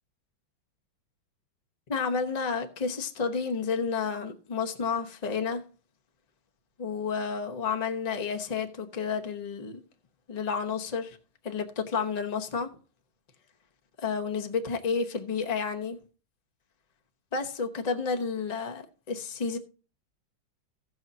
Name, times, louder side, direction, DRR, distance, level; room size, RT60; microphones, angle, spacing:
voice 1, 1.9-5.7 6.8-9.8 10.3-11.2 11.4-12.7 14.0-16.0 17.3-19.6, left 5 dB, 40° left, 0.5 m, -31 dB
16.0 x 6.3 x 2.7 m
omnidirectional pair, 2.2 m